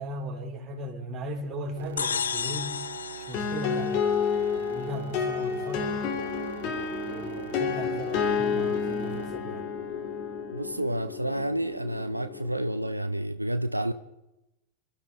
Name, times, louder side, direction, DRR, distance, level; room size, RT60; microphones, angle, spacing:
voice 1, 0.0-2.8 3.3-6.0 7.1-9.6, right 1 dB, 25° right, 4.1 m, -37 dB
sound 1, 1.8-9.3, right 10 dB, 55° right, 1.4 m, -43 dB
sound 2, 2.0-4.6, left 7 dB, 70° left, 0.6 m, -33 dB
sound 3, 3.3-12.9, left 7 dB, 40° left, 3.0 m, -30 dB
voice 2, 10.5-13.9, right 1 dB, 85° right, 0.7 m, -30 dB
26.5 x 13.0 x 4.1 m
figure-of-eight pair, 90°, 0 cm